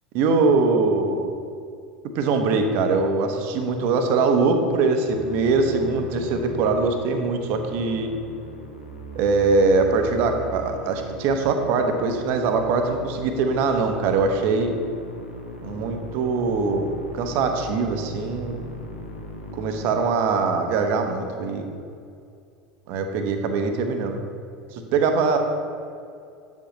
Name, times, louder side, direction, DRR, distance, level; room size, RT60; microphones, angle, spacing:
voice 1, 0.1-1.3 2.1-8.1 9.1-14.7 15.6-16.9 17.1-18.6 19.5-21.7 22.9-24.2 24.7-25.4, right 4 dB, 45° right, 6 dB, 0.8 m, -22 dB
Musical instrument, 5.0-19.9, equal, 85° left, 1.0 m, -38 dB
8.7 x 7.3 x 3.1 m, 2.4 s
figure-of-eight pair, 75°, 5 cm